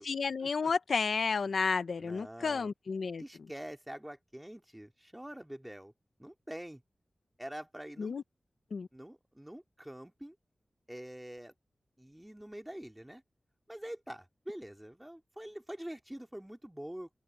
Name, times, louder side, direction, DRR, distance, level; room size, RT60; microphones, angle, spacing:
voice 1, 0.0-3.2 8.0-8.2 8.7-8.9, left 5 dB, 90° left, 1.0 m, -31 dB
voice 2, 2.0-2.7 3.2-5.9 6.2-6.8 7.4-8.1 8.9-10.4 10.9-11.5 12.0-13.2 13.7-17.1, right 1 dB, 10° right, 2.4 m, -45 dB
open air
wide cardioid pair, 105°, 0 cm